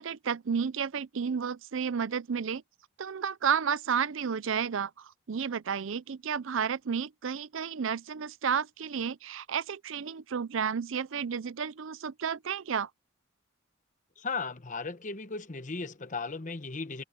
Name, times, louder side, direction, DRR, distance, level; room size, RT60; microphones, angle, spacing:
voice 1, 0.0-2.6 3.0-12.9, right 7 dB, 65° right, 0.5 m, -32 dB
voice 2, 14.2-17.0, left 4 dB, 35° left, 1.1 m, -36 dB
head